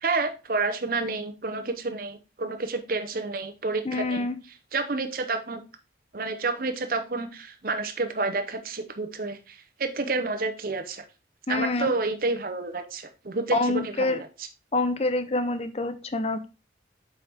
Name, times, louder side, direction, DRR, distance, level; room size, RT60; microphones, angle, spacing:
voice 1, 0.0-4.3 4.7-5.6 6.1-11.0 11.5-14.2, right 3 dB, 55° right, 7 dB, 0.8 m, -29 dB
voice 2, 3.8-4.4 11.5-11.9 13.5-14.2 14.7-16.5, left 2 dB, 35° left, 10 dB, 0.7 m, -26 dB
7.5 x 4.7 x 3.5 m, 0.30 s
head